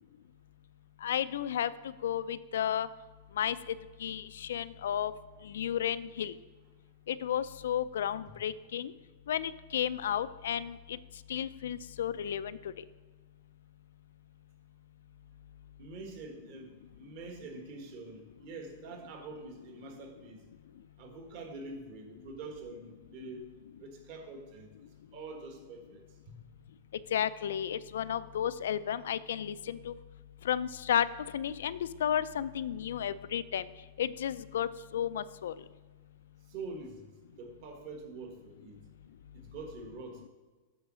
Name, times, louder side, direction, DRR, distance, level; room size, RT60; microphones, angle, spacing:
voice 1, 1.0-1.7 2.0-2.9 3.4-3.7 4.0-5.1 5.4-6.3 7.1-8.9 9.3-11.0 11.3-12.6 27.1-29.9 30.4-31.1 31.3-33.7 34.0-35.5, left 9 dB, 85° left, 15 dB, 0.3 m, -32 dB
voice 2, 15.8-20.4 21.0-23.4 23.8-24.7 25.1-26.4 36.5-37.0 37.4-38.8 39.3-40.3, right 3 dB, 45° right, 4 dB, 1.4 m, -45 dB
8.0 x 4.6 x 6.1 m, 1.3 s
supercardioid pair, 160°, 0 cm